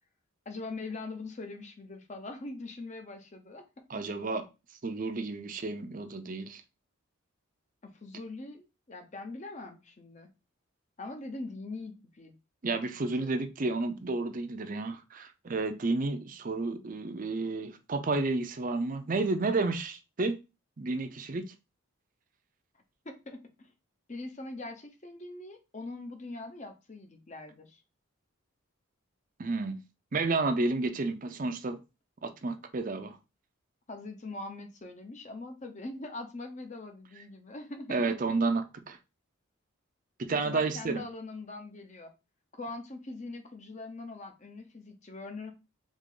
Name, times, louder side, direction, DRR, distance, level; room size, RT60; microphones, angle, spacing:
voice 1, 0.5-4.0 7.8-10.3 11.0-12.3 13.2-13.4 23.0-23.7 24.1-27.8 33.9-38.1 40.3-42.1 42.6-45.5, left 2 dB, 35° left, 0.7 m, -42 dB
voice 2, 3.9-4.4 4.8-6.6 12.6-20.4 20.8-21.5 29.4-29.8 30.1-31.8 32.2-33.2 37.9-39.0 40.2-41.0, right 3 dB, 40° right, 0.5 m, -31 dB
3.7 x 3.6 x 3.8 m
head